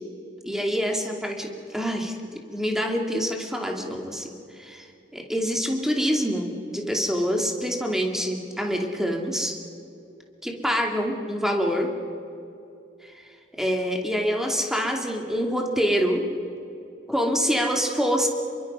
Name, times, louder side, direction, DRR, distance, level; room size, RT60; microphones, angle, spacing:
voice 1, 0.4-4.9 5.1-9.6 10.4-11.9 13.0-13.1 13.6-16.3 17.1-18.3, equal, 5° right, 1 dB, 2.5 m, -26 dB
27.0 x 23.0 x 5.6 m, 2.7 s
head